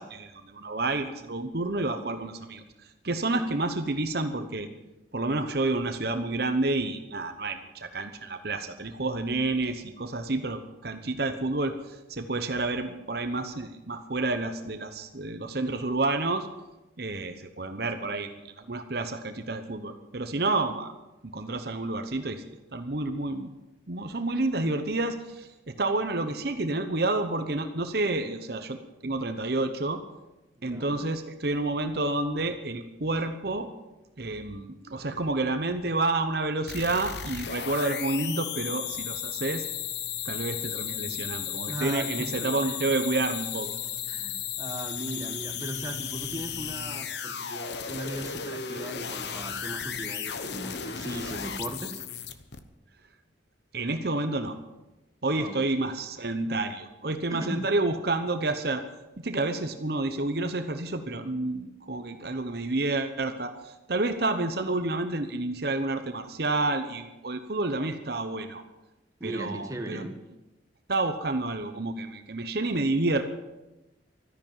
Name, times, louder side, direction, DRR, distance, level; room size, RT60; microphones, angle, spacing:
voice 1, 0.0-2.6 3.0-4.7 5.1-16.5 17.0-20.9 21.2-22.4 22.7-23.5 23.9-28.8 29.0-30.0 30.6-33.7 34.2-39.6 40.2-43.8 53.7-54.6 55.2-58.8 59.2-68.6 69.2-70.1 70.9-73.2, right 2 dB, 55° right, 8 dB, 0.9 m, -29 dB
voice 2, 30.6-30.9 41.7-42.1 42.4-42.7 44.1-52.0 55.3-55.6 57.3-57.6 69.2-70.1, right 1 dB, 15° right, 4 dB, 1.3 m, -38 dB
sound 1, 36.7-52.6, left 8 dB, 60° left, 1.0 m, -35 dB
13.5 x 10.5 x 9.2 m, 1.0 s
head